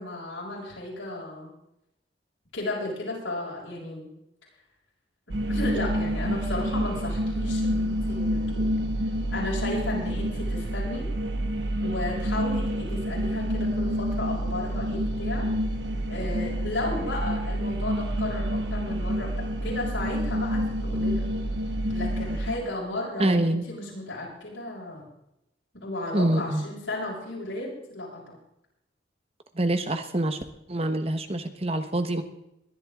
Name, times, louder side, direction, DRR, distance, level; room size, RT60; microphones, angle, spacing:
voice 1, 0.0-1.5 2.5-4.1 5.5-8.7 9.3-11.1 11.8-15.5 16.1-21.3 21.9-25.1 25.7-28.4, left 2 dB, 80° left, -4 dB, 7.0 m, -34 dB
sound 1, 5.3-22.6, equal, 70° right, 1.4 m, -28 dB
voice 2, 23.2-23.6 26.1-26.7 29.5-30.4 30.7-32.2, right 1 dB, 35° right, 8 dB, 1.2 m, -25 dB
21.0 x 11.5 x 3.8 m, 0.83 s
head